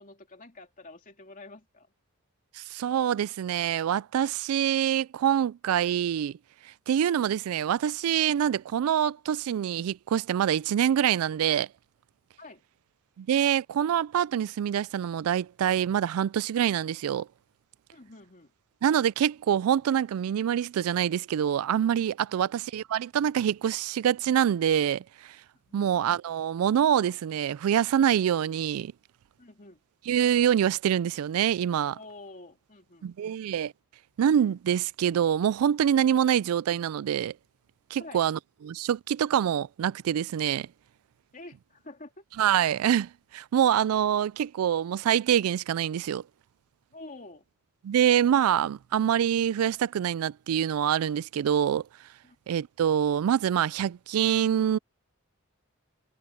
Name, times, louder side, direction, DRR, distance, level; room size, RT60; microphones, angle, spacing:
voice 1, 0.0-1.9 12.4-12.6 17.9-18.5 22.3-22.5 25.6-25.9 29.4-29.8 31.9-33.1 38.0-38.3 41.3-42.2 46.9-47.4 52.2-52.4, left 2 dB, 40° left, 3.1 m, -47 dB
voice 2, 2.5-6.4 6.6-11.7 13.2-17.3 18.8-25.4 25.7-28.9 30.1-32.0 33.0-33.7 34.2-37.3 37.9-40.7 42.4-46.2 47.8-51.9 52.5-54.8, right 9 dB, 85° right, 0.3 m, -25 dB
head